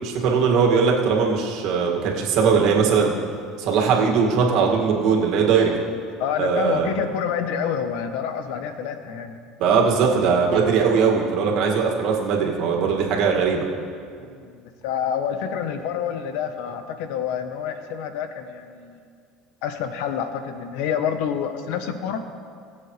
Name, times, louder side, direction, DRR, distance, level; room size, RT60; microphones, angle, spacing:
voice 1, 0.0-3.1 3.6-5.7 6.4-6.9 9.6-13.7, right 5 dB, 65° right, -1 dB, 2.1 m, -20 dB
voice 2, 6.2-9.4 14.2-19.0 19.6-22.2, left 8 dB, 75° left, 8 dB, 1.0 m, -28 dB
21.0 x 7.6 x 3.3 m, 2.2 s
supercardioid pair, 110°, 0 cm